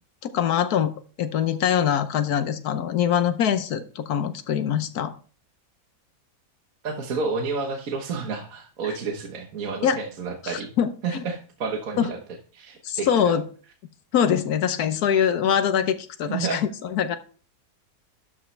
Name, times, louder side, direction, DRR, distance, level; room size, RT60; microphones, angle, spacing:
voice 1, 0.2-0.9 1.2-5.1 9.8-10.0 10.4-11.2 12.0-12.1 12.8-13.5 14.1-17.2, left 8 dB, 75° left, 11 dB, 1.3 m, -23 dB
voice 2, 6.8-10.7 11.0-12.2 12.5-13.3 16.3-16.6, right 4 dB, 60° right, 3 dB, 1.5 m, -30 dB
12.5 x 5.5 x 3.2 m, 0.40 s
omnidirectional pair, 1.7 m